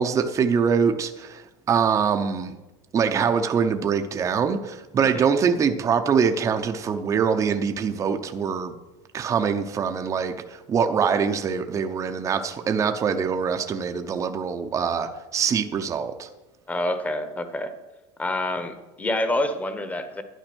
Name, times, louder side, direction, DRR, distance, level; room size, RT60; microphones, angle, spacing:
voice 1, 0.0-1.4 1.7-2.5 2.9-8.7 9.1-16.3, right 6 dB, 20° right, 6 dB, 0.8 m, -24 dB
voice 2, 16.7-17.7 18.2-20.2, left 1 dB, 10° left, 9 dB, 1.1 m, -27 dB
12.0 x 9.8 x 6.2 m, 1.0 s
cardioid pair, 155°, 14 cm